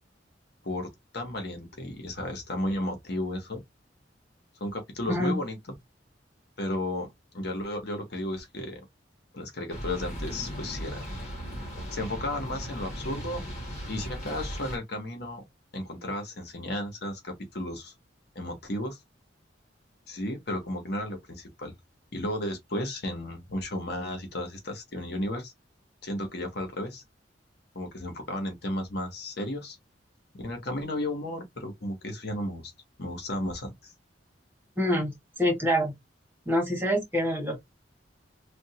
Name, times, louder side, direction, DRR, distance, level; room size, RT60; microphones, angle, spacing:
voice 1, 1.1-3.6 4.6-5.6 6.6-7.1 7.3-8.8 9.3-11.3 11.9-13.4 13.9-15.4 15.7-17.9 18.3-19.0 20.1-21.7 22.1-25.5 26.0-27.0 27.7-29.8 30.3-32.7 33.0-33.9, left 1 dB, 60° left, 1.2 m, -33 dB
voice 2, 5.1-5.4 34.8-35.1 35.4-35.9 36.4-37.6, equal, 10° right, 1.6 m, -26 dB
sound 1, 9.7-14.8, equal, 40° left, 1.7 m, -37 dB
3.5 x 2.5 x 2.8 m
head